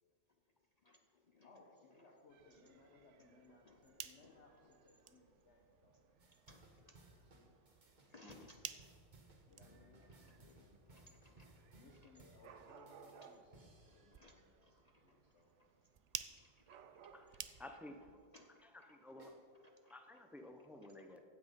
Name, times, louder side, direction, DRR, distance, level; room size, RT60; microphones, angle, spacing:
voice 1, 0.8-1.5 1.9-2.2 2.5-3.3 3.7-4.8 6.3-7.0 8.1-8.7 9.6-12.2 12.7-12.9 13.9-15.2 16.4-17.4 18.3-18.9 19.5-20.0 20.8-21.1, left 2 dB, 50° left, 5 dB, 0.5 m, -66 dB
voice 2, 1.4-6.9 7.3-7.7 9.5-11.1 11.7-14.5 15.0-15.5 17.9-18.2, left 2 dB, 70° left, -1 dB, 1.5 m, -66 dB
Dog / Cat, 2.3-18.2, right 6 dB, 80° right, 1.0 m, -66 dB
sound 1, 3.8-18.0, right 8 dB, 65° right, 0.4 m, -55 dB
sound 2, 6.2-14.4 19.2-19.3, right 2 dB, 40° right, 1.4 m, -64 dB
voice 3, 17.6-18.1 18.9-19.4 19.9-21.2, left 1 dB, ahead, 6 dB, 0.5 m, -53 dB
15.5 x 6.1 x 5.3 m, 2.2 s
omnidirectional pair, 1.2 m